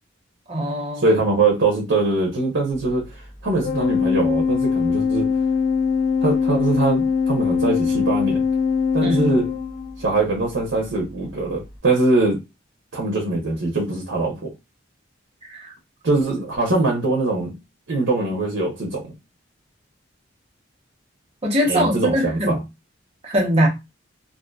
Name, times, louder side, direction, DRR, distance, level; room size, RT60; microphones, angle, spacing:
voice 1, 0.5-1.1 9.0-9.3 15.4-15.7 21.4-22.6 23.2-23.7, equal, 30° right, 0.8 m, -22 dB
voice 2, 1.0-5.3 6.2-8.4 8.9-9.5 10.0-12.4 12.9-14.5 16.0-17.6 17.9-19.1 21.7-22.6, right 2 dB, 75° right, 0.8 m, -22 dB
Organ, 3.6-10.2, left 6 dB, 20° left, 0.9 m, -21 dB
2.6 x 2.5 x 2.3 m
head